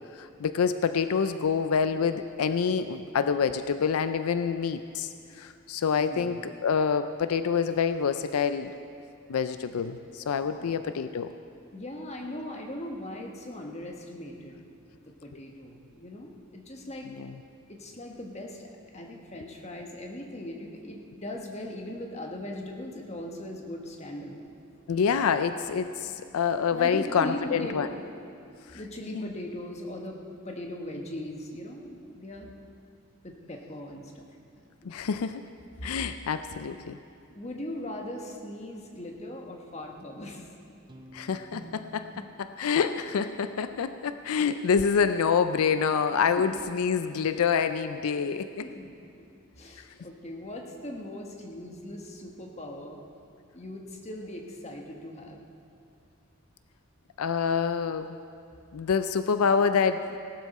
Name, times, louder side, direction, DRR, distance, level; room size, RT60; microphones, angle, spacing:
voice 1, 0.2-5.1 5.4-8.7 9.3-11.3 17.2-17.3 24.9-27.9 29.1-29.3 34.9-35.4 35.8-37.0 41.1-48.7 57.2-58.2 58.7-60.2, left 6 dB, 85° left, 10 dB, 0.4 m, -27 dB
voice 2, 6.0-6.4 10.5-10.8 11.7-14.6 15.2-17.1 17.7-24.5 26.7-28.0 28.7-30.2 30.4-32.5 33.2-34.2 34.5-35.0 37.3-40.5 46.4-46.6 48.6-48.9 49.6-53.0 53.5-55.4, left 1 dB, 30° left, 1 dB, 1.3 m, -39 dB
Guitar, 40.9-44.2, right 1 dB, 20° right, 0.7 m, -50 dB
18.0 x 12.0 x 4.2 m, 2.5 s
head